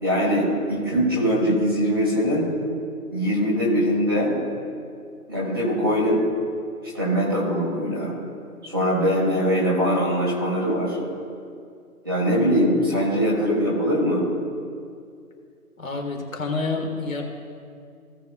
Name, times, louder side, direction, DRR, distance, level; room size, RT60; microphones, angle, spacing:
voice 1, 0.0-2.5 3.1-4.3 5.3-6.2 6.8-8.1 8.6-11.0 12.0-14.3, equal, 15° right, -8 dB, 1.5 m, -22 dB
voice 2, 15.8-17.2, left 3 dB, 60° left, 2 dB, 1.6 m, -28 dB
17.5 x 6.9 x 2.3 m, 2.3 s
figure-of-eight pair, 175°, 46 cm